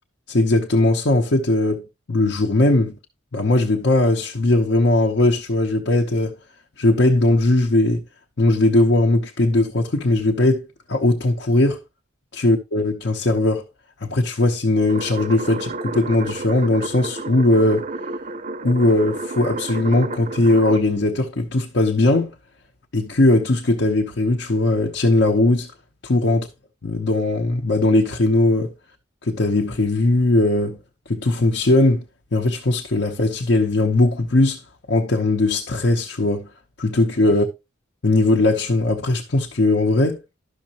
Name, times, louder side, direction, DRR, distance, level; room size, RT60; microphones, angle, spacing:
voice 1, 0.3-3.0 3.3-6.4 6.8-8.0 8.4-11.8 12.3-13.6 14.0-17.9 18.6-22.3 22.9-25.7 26.0-26.5 26.8-28.7 29.2-30.8 31.1-32.0 32.3-34.6 34.9-36.5 36.8-37.5 38.0-40.2, left 2 dB, 60° left, 0.8 m, -19 dB
sound 1, 14.9-20.8, right 3 dB, 40° right, 0.6 m, -31 dB
11.5 x 6.3 x 2.9 m
head